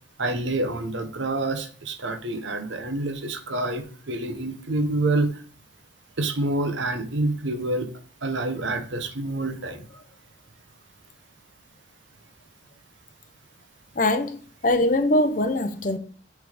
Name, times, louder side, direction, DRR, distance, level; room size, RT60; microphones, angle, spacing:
voice 1, 0.2-5.4 6.2-7.9 8.2-9.9, right 2 dB, 70° right, 0.9 m, -27 dB
voice 2, 14.0-16.0, left 1 dB, 45° left, 0.7 m, -22 dB
6.5 x 3.5 x 5.0 m
head